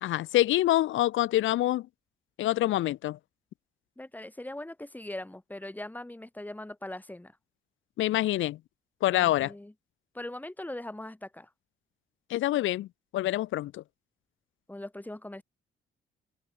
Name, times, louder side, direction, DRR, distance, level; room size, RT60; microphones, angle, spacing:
voice 1, 0.0-1.9 2.4-3.2 8.0-8.6 9.0-9.5 12.3-12.9 13.1-13.8, left 15 dB, 80° left, 0.9 m, -26 dB
voice 2, 4.0-7.4 9.1-9.7 10.1-11.5 14.7-15.4, left 1 dB, 10° left, 3.3 m, -40 dB
cardioid pair, 90°, 20 cm